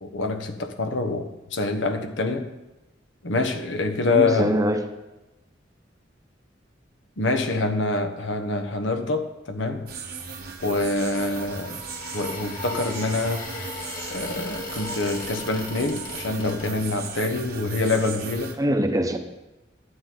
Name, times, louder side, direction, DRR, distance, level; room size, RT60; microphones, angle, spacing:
voice 1, 0.0-2.5 3.2-4.6 7.2-9.9 10.6-11.8 12.1-13.5 14.1-18.6, left 3 dB, 80° left, 6 dB, 1.2 m, -26 dB
voice 2, 4.1-4.8 18.6-19.2, right 1 dB, 20° right, 5 dB, 0.9 m, -23 dB
sound 1, 9.9-18.5, right 5 dB, 55° right, 1.3 m, -37 dB
sound 2, 11.0-17.1, left 2 dB, 50° left, 1.9 m, -37 dB
12.5 x 9.4 x 3.9 m, 0.99 s
head